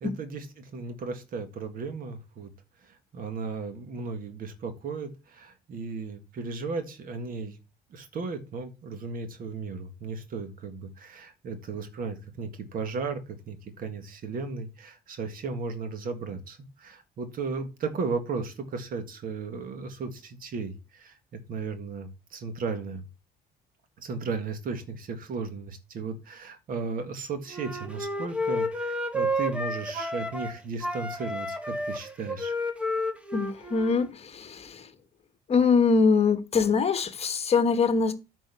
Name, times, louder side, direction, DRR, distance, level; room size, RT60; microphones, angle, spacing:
voice 1, 0.0-2.5 2.8-7.6 7.9-13.2 13.5-23.1 24.0-32.6, right 4 dB, 55° right, 1.7 m, -35 dB
Wind instrument woodwind instrument, 27.5-30.5 30.8-34.1, equal, 5° right, 1.3 m, -31 dB
voice 2, 33.3-34.8 35.5-38.1, left 5 dB, 35° left, 1.2 m, -23 dB
9.0 x 4.5 x 5.6 m
cardioid pair, 110°, 17 cm